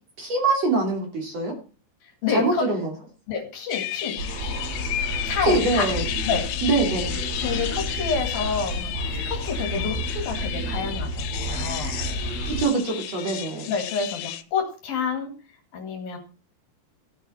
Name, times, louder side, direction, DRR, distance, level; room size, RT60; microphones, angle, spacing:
voice 1, 0.2-1.6 2.3-2.9 5.4-6.0 6.6-7.1 12.5-13.7, right 3 dB, 40° right, 1 dB, 3.6 m, -24 dB
voice 2, 2.2-2.7 3.3-4.2 5.3-5.9 6.3-6.5 7.4-12.0 13.7-15.4 15.7-16.2, left 6 dB, 60° left, 5 dB, 3.7 m, -28 dB
sound 1, 3.7-14.4, left 12 dB, 85° left, 3.0 m, -33 dB
sound 2, 4.2-12.6, right 1 dB, 90° right, 8.4 m, -30 dB
15.5 x 8.0 x 4.3 m, 0.34 s
omnidirectional pair, 4.9 m